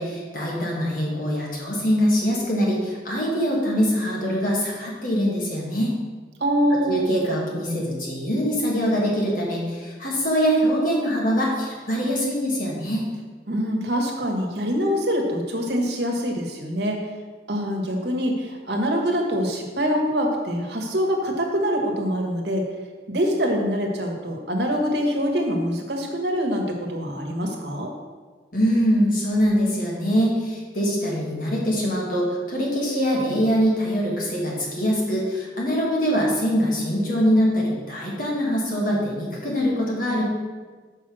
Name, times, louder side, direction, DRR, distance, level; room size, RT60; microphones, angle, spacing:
voice 1, 0.0-5.9 6.9-13.1 28.5-40.2, equal, 50° left, -4 dB, 1.9 m, -23 dB
voice 2, 6.4-7.0 13.5-17.1 17.5-22.7 23.1-27.9, equal, 65° right, 2 dB, 1.4 m, -24 dB
6.2 x 5.4 x 6.2 m, 1.4 s
head